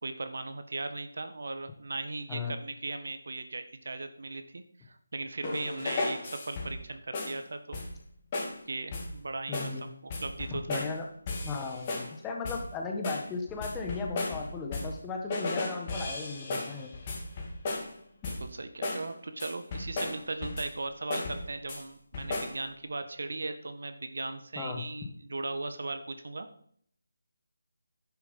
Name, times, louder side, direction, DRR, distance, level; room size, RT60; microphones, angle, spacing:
voice 1, 0.0-7.8 8.7-10.9 18.3-26.5, right 3 dB, 65° right, 9 dB, 1.4 m, -38 dB
sound 1, 5.4-6.8 7.1-7.4 7.7-8.1 8.3-8.6 8.9-9.2 9.5-9.8 10.1-11.0 11.3-12.2 12.4-12.7 13.0-15.0 15.3-18.0 18.2-18.5 18.8-19.1 19.4-20.8 21.1-21.8 22.1-22.6, left 2 dB, 25° left, 2.4 m, -35 dB
voice 2, 9.5-9.9 10.7-11.1 11.4-16.9 24.5-24.8, left 4 dB, 10° left, 1 dB, 1.5 m, -36 dB
11.0 x 7.0 x 5.6 m, 0.62 s
figure-of-eight pair, 165°, 0 cm